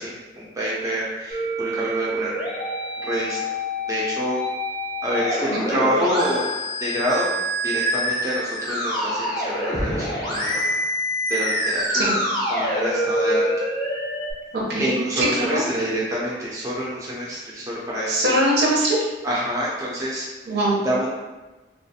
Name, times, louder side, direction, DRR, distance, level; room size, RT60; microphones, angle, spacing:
voice 1, 0.0-2.4 3.0-3.5 3.9-4.4 5.0-6.5 6.8-7.3 7.6-10.6 11.3-12.2 12.5-13.5 14.8-18.2 19.2-20.3 20.8-21.1, equal, 20° right, -6 dB, 0.4 m, -27 dB
Musical instrument, 1.3-14.3, equal, 25° left, 0.6 m, -26 dB
voice 2, 11.9-12.3 14.5-15.6 18.1-19.0 20.5-20.9, right 1 dB, 70° right, -4 dB, 0.7 m, -22 dB
2.4 x 2.3 x 2.7 m, 1.1 s
head